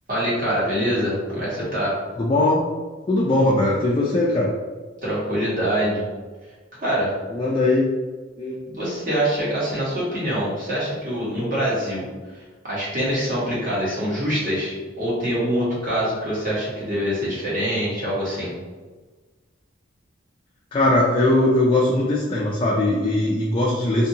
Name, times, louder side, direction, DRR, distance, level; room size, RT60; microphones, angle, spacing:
voice 1, 0.1-2.0 5.0-6.0 6.8-7.1 8.7-12.1 12.6-18.5, equal, 45° right, -8 dB, 1.3 m, -24 dB
voice 2, 2.2-2.6 3.1-4.5 7.3-7.8 8.4-8.7 20.7-24.1, left 2 dB, 25° left, -4 dB, 0.3 m, -20 dB
2.7 x 2.6 x 2.7 m, 1.3 s
head